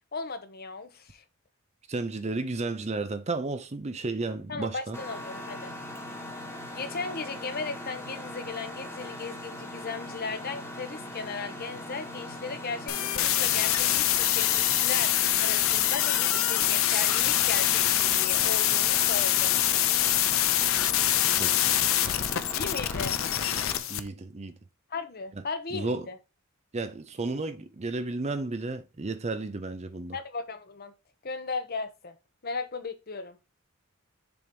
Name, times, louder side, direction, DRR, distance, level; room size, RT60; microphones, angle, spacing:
voice 1, 0.1-1.2 4.5-5.7 6.7-19.6 22.5-23.2 24.9-26.2 30.1-30.9 31.2-32.1 32.4-33.4, left 4 dB, 45° left, 0.9 m, -36 dB
voice 2, 1.9-5.0 21.4-21.9 23.9-24.6 25.7-26.1 26.7-30.2, right 3 dB, 30° right, 0.6 m, -33 dB
Mechanisms, 4.9-23.8, left 1 dB, 10° left, 1.5 m, -40 dB
sound 1, 12.9-24.0, left 12 dB, 70° left, 0.6 m, -25 dB
7.0 x 3.1 x 5.2 m
head